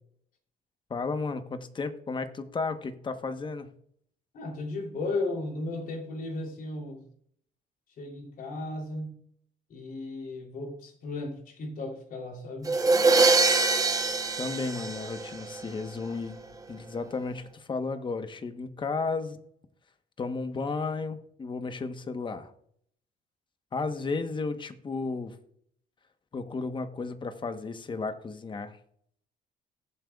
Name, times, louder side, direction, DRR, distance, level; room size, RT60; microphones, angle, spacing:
voice 1, 0.9-3.7 14.4-16.4 16.7-19.4 20.2-22.5 23.7-25.4 26.3-28.8, left 4 dB, 30° left, 8 dB, 1.1 m, -33 dB
voice 2, 4.3-7.0 8.0-9.2 9.7-12.7, left 2 dB, 55° left, 1 dB, 3.2 m, -35 dB
sound 1, 12.7-15.6, right 3 dB, 20° right, 0.9 m, -23 dB
19.0 x 7.8 x 2.4 m, 0.67 s
cardioid pair, 110°, 17 cm